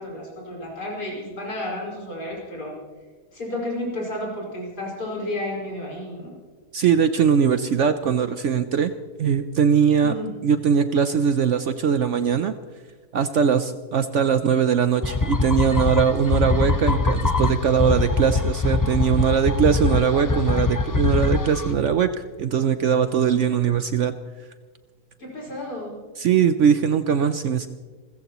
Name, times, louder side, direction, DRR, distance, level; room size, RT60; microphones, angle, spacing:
voice 1, 0.0-2.7 3.3-6.3 10.0-10.4 16.3-16.4 25.2-26.0, left 1 dB, 80° left, -3 dB, 6.1 m, -32 dB
voice 2, 6.7-8.9 9.2-10.1 10.4-12.5 13.1-22.1 22.4-24.1 26.2-27.7, right 7 dB, 60° right, 10 dB, 0.8 m, -21 dB
sound 1, 15.0-21.7, left 3 dB, 30° left, 0.3 m, -23 dB
29.0 x 15.0 x 3.0 m, 1.5 s
omnidirectional pair, 1.7 m